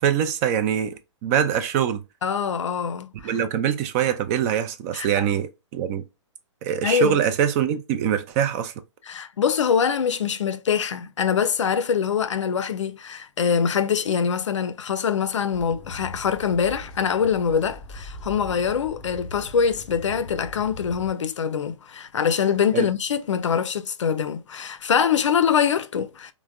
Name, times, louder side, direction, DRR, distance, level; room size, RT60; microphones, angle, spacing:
voice 1, 0.0-2.0 3.2-6.0 6.6-8.7 22.7-22.9, right 9 dB, 30° right, 0.4 m, -23 dB
voice 2, 2.2-3.3 4.9-5.2 6.8-7.2 9.1-26.3, left 7 dB, 75° left, 0.4 m, -24 dB
sound 1, 15.5-21.1, left 1 dB, 30° left, 0.9 m, -40 dB
3.3 x 2.1 x 2.2 m
figure-of-eight pair, 120°, 16 cm